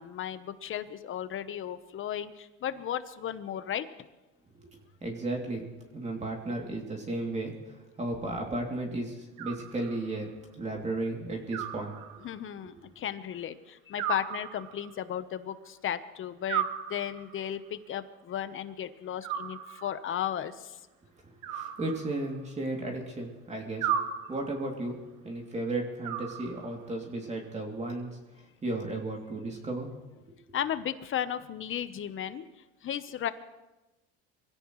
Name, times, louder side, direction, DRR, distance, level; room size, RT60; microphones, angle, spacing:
voice 1, 0.0-3.9 12.2-20.8 30.5-32.5 32.8-33.3, left 10 dB, 45° left, 12 dB, 1.1 m, -35 dB
voice 2, 4.7-12.0 12.6-12.7 21.2-24.0 24.3-28.2 28.6-29.9 30.5-30.6, right 2 dB, 25° right, 0 dB, 2.9 m, -34 dB
Animal, 9.4-10.3 11.5-12.5 14.0-15.1 16.5-17.5 19.2-20.1 21.4-22.5 23.8-24.7 26.0-26.9, right 9 dB, 75° right, 1.5 m, -36 dB
24.0 x 16.5 x 3.2 m, 1.1 s
cardioid pair, 110°, 29 cm